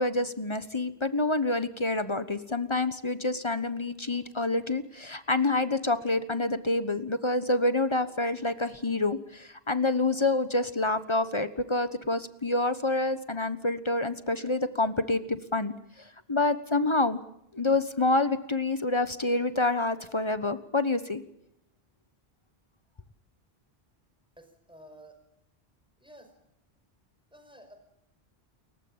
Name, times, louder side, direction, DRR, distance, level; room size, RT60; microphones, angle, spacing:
voice 1, 0.0-17.2 17.5-21.2, left 2 dB, 30° left, 12 dB, 1.2 m, -27 dB
voice 2, 24.4-25.2 26.0-26.4 27.3-27.8, right 1 dB, 5° right, 5 dB, 5.4 m, -52 dB
29.0 x 15.0 x 8.9 m, 0.78 s
omnidirectional pair, 1.1 m